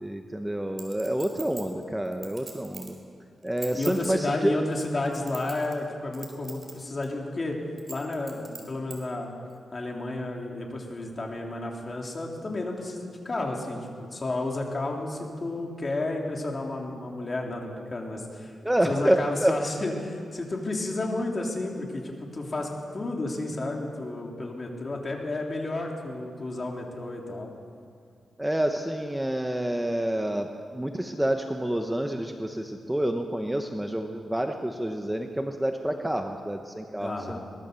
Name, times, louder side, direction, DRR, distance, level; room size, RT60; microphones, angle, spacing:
voice 1, 0.0-2.9 3.4-4.6 18.6-19.6 28.4-37.4, right 1 dB, 5° right, 4 dB, 1.0 m, -28 dB
Chink clink, 0.8-3.0 3.4-4.1 4.7-5.8 6.1-6.7 7.0-7.1 7.8-9.0 9.5-9.6, right 4 dB, 40° right, 4.2 m, -42 dB
voice 2, 3.7-7.6 7.9-9.3 9.7-18.5 18.8-27.5 37.0-37.4, left 2 dB, 35° left, 0 dB, 3.6 m, -32 dB
23.0 x 19.0 x 7.0 m, 2.2 s
wide cardioid pair, 115°, 0 cm